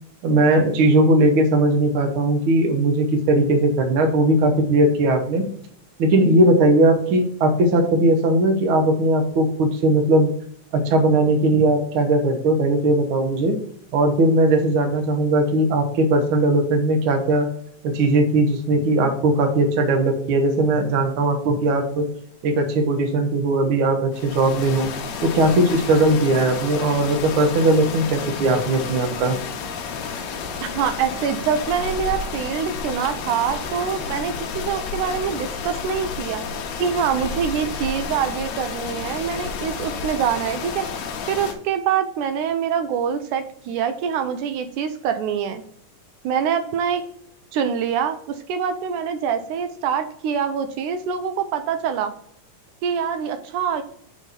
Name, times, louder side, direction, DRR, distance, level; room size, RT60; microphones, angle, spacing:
voice 1, 0.2-5.4 6.0-10.3 10.7-13.6 13.9-17.5 17.8-22.1 22.4-24.9 25.2-29.4, right 2 dB, 60° right, 4 dB, 1.4 m, -19 dB
sound 1, 24.1-41.5, left 5 dB, 70° left, 1.8 m, -31 dB
voice 2, 30.6-36.4 36.8-40.9 41.3-45.6 46.2-47.0 47.5-52.1 52.8-53.8, right 7 dB, 80° right, 9 dB, 2.0 m, -25 dB
6.2 x 3.4 x 5.6 m, 0.65 s
omnidirectional pair, 3.6 m